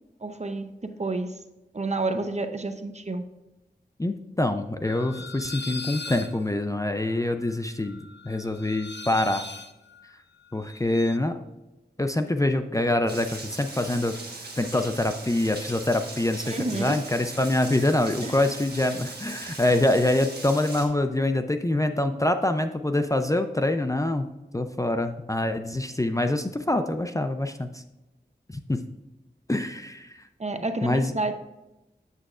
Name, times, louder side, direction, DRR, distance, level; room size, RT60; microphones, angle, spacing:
voice 1, 0.2-1.3 1.7-3.2 16.4-17.0 18.2-18.4 30.4-31.3, right 2 dB, 40° right, 7 dB, 0.7 m, -29 dB
voice 2, 4.0-9.5 10.5-11.4 12.0-14.1 14.6-27.8 28.7-28.8 29.5-30.3 30.8-31.1, left 1 dB, 20° left, 7 dB, 0.4 m, -25 dB
sound 1, 4.8-11.2, left 4 dB, 75° left, 0.6 m, -40 dB
Rain, 13.1-20.9, right 3 dB, 65° right, 1.3 m, -40 dB
8.2 x 7.7 x 2.4 m, 0.99 s
wide cardioid pair, 70°, 18 cm